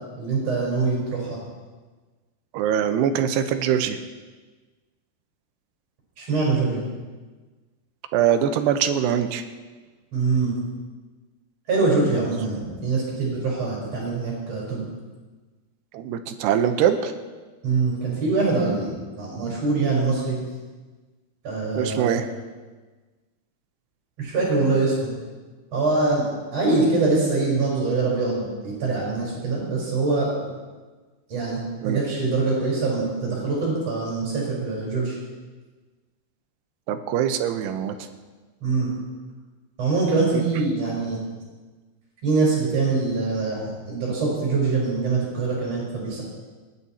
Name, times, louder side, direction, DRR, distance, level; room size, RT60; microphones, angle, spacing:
voice 1, 0.2-1.4 6.2-6.9 10.1-10.5 11.7-14.8 17.6-20.4 21.4-22.2 24.2-25.1 25.7-26.2 26.5-30.3 31.3-35.1 38.6-38.9 39.8-41.2 42.2-46.2, right 3 dB, 40° right, -4 dB, 5.2 m, -24 dB
voice 2, 2.5-4.0 8.1-9.4 15.9-17.1 21.8-22.3 31.8-32.0 36.9-38.0 40.3-40.4, right 9 dB, 80° right, 8 dB, 2.9 m, -23 dB
27.5 x 10.5 x 4.3 m, 1.3 s
omnidirectional pair, 4.8 m